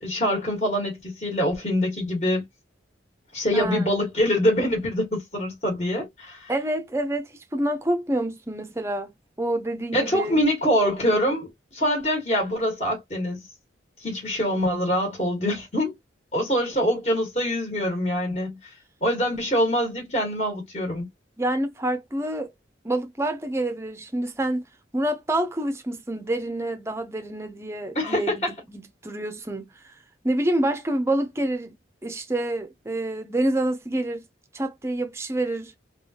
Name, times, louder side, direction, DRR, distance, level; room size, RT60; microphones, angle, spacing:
voice 1, 0.0-2.4 3.3-6.5 9.9-13.4 14.0-16.0 16.3-18.7 19.0-21.1 27.9-28.5, equal, 35° left, 1.3 m, -24 dB
voice 2, 3.5-4.0 6.5-9.1 9.4-10.4 21.4-22.5 22.8-24.6 24.9-29.9 30.2-31.7 32.0-34.2 34.5-35.7, right 1 dB, 15° right, 0.5 m, -27 dB
3.2 x 2.4 x 2.8 m
head